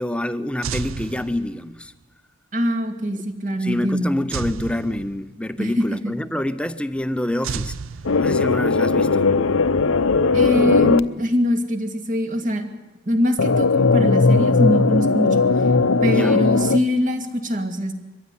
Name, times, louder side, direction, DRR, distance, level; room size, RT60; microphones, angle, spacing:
voice 1, 0.0-1.9 3.1-3.2 3.6-7.7 8.2-9.3 16.1-16.4, left 1 dB, 5° left, 0.7 m, -27 dB
sound 1, 0.6-1.9 4.3-5.6 7.4-8.7, right 5 dB, 80° right, 0.7 m, -31 dB
voice 2, 2.5-4.1 5.6-6.2 10.3-12.7 13.1-15.4 16.0-17.9, equal, 40° right, 2.3 m, -23 dB
sound 2, 8.1-11.0 13.4-16.8, left 4 dB, 80° left, 0.7 m, -18 dB
22.5 x 15.5 x 9.8 m
head